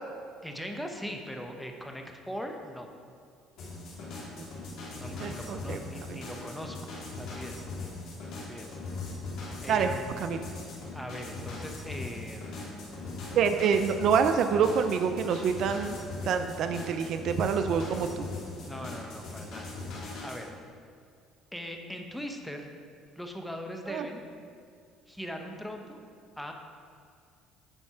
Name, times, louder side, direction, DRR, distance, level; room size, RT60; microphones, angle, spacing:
voice 1, 0.4-2.9 5.0-6.9 7.2-7.7 8.3-8.8 9.6-10.4 10.9-13.2 18.6-19.9 20.2-20.5 21.5-22.7 23.2-24.2 25.1-26.0 26.4-26.5, equal, 5° left, 3 dB, 0.9 m, -40 dB
sound 1, 3.6-20.4, left 3 dB, 65° left, 2.2 m, -40 dB
voice 2, 5.2-5.8 9.7-10.4 13.3-16.0 16.2-18.3 23.9-24.1, right 6 dB, 60° right, 8 dB, 0.4 m, -27 dB
9.8 x 4.3 x 4.9 m, 2.2 s
supercardioid pair, 90°, 0 cm